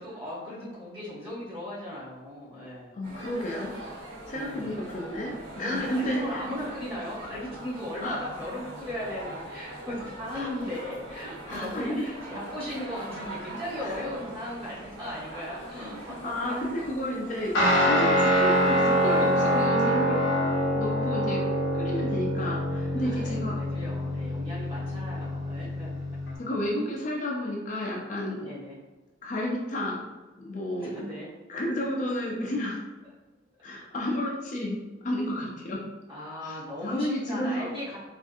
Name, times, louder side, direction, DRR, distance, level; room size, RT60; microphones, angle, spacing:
voice 1, 0.0-2.9 4.3-4.8 5.6-16.2 22.9-25.9 28.4-28.8 30.8-31.3 36.1-38.0, left 1 dB, 30° right, -8 dB, 1.3 m, -37 dB
voice 2, 3.0-3.7 4.3-6.4 8.0-8.2 10.3-10.5 11.4-12.1 13.8-14.0 15.3-15.5 16.2-20.2 20.7-21.4 21.7-23.6 26.4-28.5 29.2-30.0 30.4-31.0 31.5-32.8 33.6-35.8 36.4-36.6 36.8-37.7, left 1 dB, 40° left, -2 dB, 0.4 m, -31 dB
sound 1, 3.0-19.7, right 1 dB, 85° right, 1.5 m, -42 dB
Guitar, 17.5-26.4, equal, 75° left, 0.7 m, -25 dB
3.4 x 2.5 x 2.6 m, 1.2 s
head